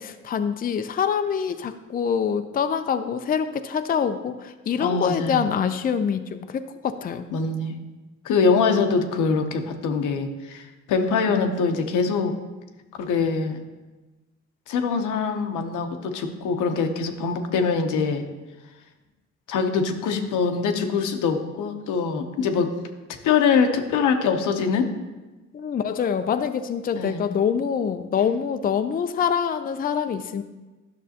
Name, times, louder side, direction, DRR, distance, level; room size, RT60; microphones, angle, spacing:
voice 1, 0.0-7.2 25.5-30.4, left 7 dB, 30° left, 9 dB, 0.4 m, -25 dB
voice 2, 4.8-5.5 7.3-7.7 8.2-12.3 13.0-13.6 14.7-18.2 19.5-22.7 23.2-24.9 26.9-27.2, left 5 dB, 85° left, 5 dB, 0.9 m, -23 dB
10.5 x 6.2 x 2.8 m, 1.2 s
cardioid pair, 90°, 30 cm